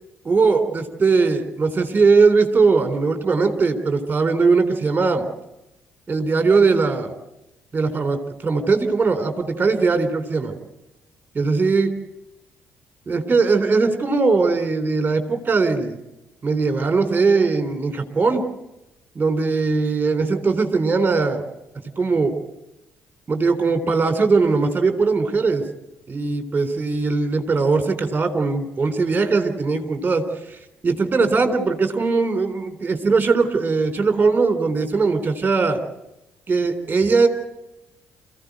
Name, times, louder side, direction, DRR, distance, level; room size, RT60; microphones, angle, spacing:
voice 1, 0.2-5.3 6.1-7.1 7.7-10.5 11.3-11.9 13.1-16.0 16.4-18.4 19.2-21.4 22.0-22.4 23.3-25.6 26.1-30.2 30.8-35.8 36.5-37.3, right 4 dB, 25° right, 7 dB, 3.8 m, -20 dB
28.0 x 16.0 x 7.8 m, 0.91 s
figure-of-eight pair, 45°, 6 cm